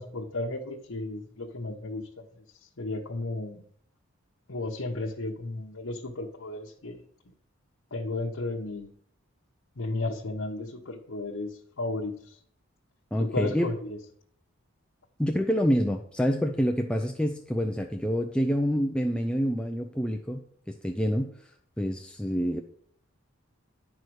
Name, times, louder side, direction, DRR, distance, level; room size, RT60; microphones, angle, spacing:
voice 1, 0.0-2.0 2.8-3.7 4.5-7.0 7.9-8.9 9.8-12.4 13.2-14.0, left 2 dB, 75° left, -2 dB, 1.1 m, -34 dB
voice 2, 13.1-13.7 15.2-21.3 21.8-22.6, equal, 5° left, 3 dB, 0.5 m, -27 dB
10.5 x 4.8 x 6.3 m, 0.63 s
head